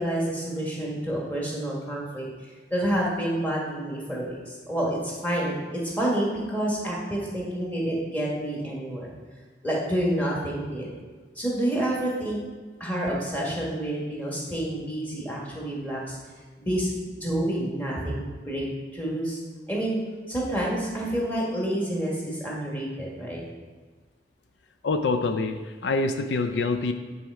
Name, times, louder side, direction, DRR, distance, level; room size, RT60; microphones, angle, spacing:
voice 1, 0.0-9.1 9.6-10.9 11.3-12.4 12.8-16.2 16.6-18.7 18.9-19.4 19.7-20.0 20.3-23.4, right 1 dB, 10° left, -4 dB, 1.6 m, -28 dB
voice 2, 24.8-26.9, left 3 dB, 80° left, 7 dB, 0.4 m, -26 dB
9.4 x 4.2 x 4.8 m, 1.4 s
head